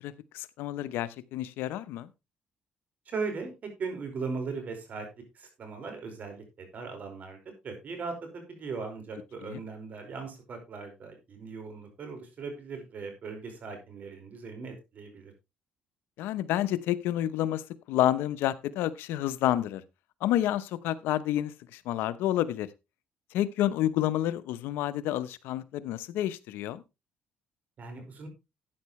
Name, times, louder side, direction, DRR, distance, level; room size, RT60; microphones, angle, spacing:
voice 1, 0.0-2.1 9.4-9.6 16.2-19.8 20.2-22.7 23.3-26.8, left 13 dB, 85° left, 15 dB, 0.8 m, -29 dB
voice 2, 3.1-3.5 3.8-5.1 5.3-7.4 7.6-15.3 27.8-28.3, right 4 dB, 50° right, 5 dB, 5.0 m, -38 dB
13.0 x 9.4 x 3.2 m, 0.25 s
cardioid pair, 100°, 4 cm